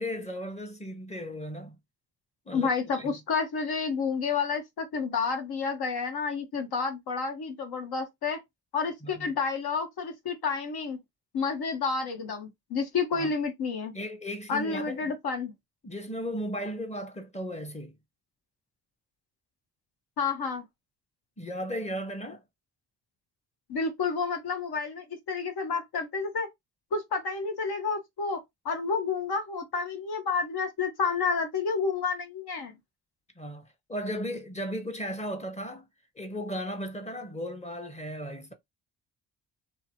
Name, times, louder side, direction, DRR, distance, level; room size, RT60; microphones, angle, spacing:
voice 1, 0.0-1.8 2.5-3.2 9.0-9.3 13.1-13.3 13.9-15.1 15.8-18.0 21.4-22.4 33.4-35.9 36.2-38.5, equal, 15° left, 0.9 m, -36 dB
voice 2, 2.5-8.4 8.7-11.0 11.3-13.9 14.5-15.5 20.2-20.6 23.7-26.5 26.9-32.7, left 5 dB, 65° left, 1.2 m, -30 dB
2.7 x 2.2 x 2.8 m
supercardioid pair, 55°, 41 cm